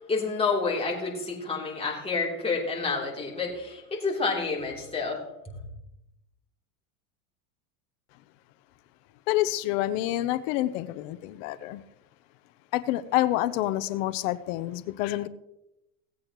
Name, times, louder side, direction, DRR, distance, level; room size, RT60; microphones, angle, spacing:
voice 1, 0.1-5.2, left 4 dB, 15° left, -3 dB, 3.4 m, -29 dB
voice 2, 9.3-11.8 12.7-15.3, left 15 dB, 65° left, 15 dB, 0.8 m, -28 dB
17.5 x 8.4 x 3.1 m, 0.89 s
supercardioid pair, 120°, 42 cm